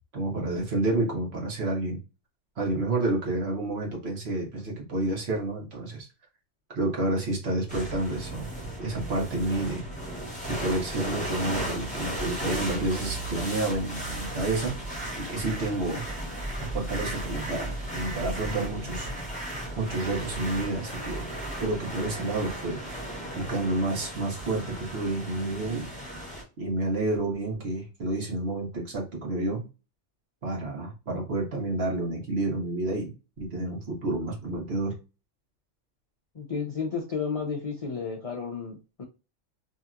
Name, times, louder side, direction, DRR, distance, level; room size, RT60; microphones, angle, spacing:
voice 1, 0.1-2.0 2.6-6.1 6.7-8.5 8.8-9.8 10.5-14.8 15.2-16.0 16.6-19.1 19.8-21.3 21.6-22.8 23.4-25.9 26.6-29.7 30.4-35.0, right 2 dB, 55° right, 1.2 m, -29 dB
sound 1, 7.7-26.4, right 1 dB, 5° left, 1.3 m, -35 dB
voice 2, 36.3-39.0, left 5 dB, 55° left, 0.4 m, -32 dB
2.9 x 2.8 x 2.3 m
omnidirectional pair, 1.3 m